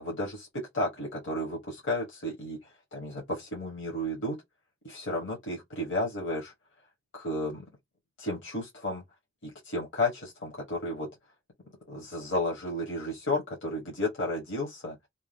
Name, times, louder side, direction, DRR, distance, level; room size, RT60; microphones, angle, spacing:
voice 1, 0.0-4.4 4.8-6.5 7.1-7.6 8.2-9.0 9.4-11.1 11.9-15.0, left 1 dB, 65° left, 1.0 m, -33 dB
2.7 x 2.2 x 3.2 m
head